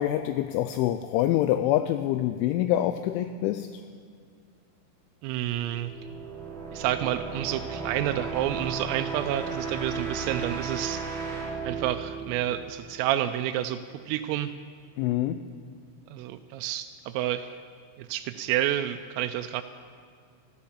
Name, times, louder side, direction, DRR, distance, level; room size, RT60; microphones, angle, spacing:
voice 1, 0.0-3.8 15.0-15.4, left 13 dB, 85° left, 10 dB, 2.7 m, -26 dB
voice 2, 5.2-5.9 6.7-11.0 11.6-13.8 14.1-14.5 16.1-17.6 18.0-19.6, right 12 dB, 85° right, 8 dB, 3.2 m, -29 dB
sound 1, 5.5-13.2, right 5 dB, ahead, 2.1 m, -35 dB
13.5 x 13.5 x 7.2 m, 2.2 s
omnidirectional pair, 5.9 m